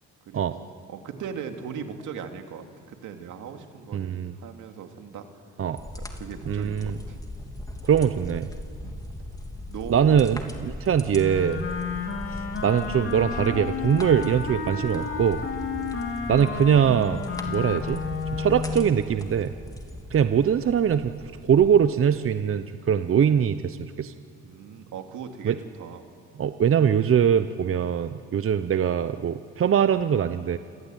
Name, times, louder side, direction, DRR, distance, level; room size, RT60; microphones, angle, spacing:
voice 1, 0.2-5.3 5.9-7.2 8.8-9.0 9.7-10.2 15.4-15.5 19.9-20.0 24.4-26.1, right 7 dB, 80° right, 5 dB, 2.6 m, -39 dB
voice 2, 3.9-4.3 5.6-5.8 6.5-6.9 7.8-8.5 9.9-11.6 12.6-15.4 16.3-18.0 18.3-19.5 20.1-21.1 21.4-24.1 25.4-25.6 26.4-30.6, right 8 dB, 45° right, 11 dB, 0.9 m, -22 dB
sound 1, 5.8-21.7, left 1 dB, 10° left, 2.9 m, -39 dB
Wind instrument woodwind instrument, 11.1-19.0, left 5 dB, 45° left, 3.6 m, -32 dB
28.0 x 22.0 x 9.3 m, 2.7 s
cardioid pair, 90°, 30 cm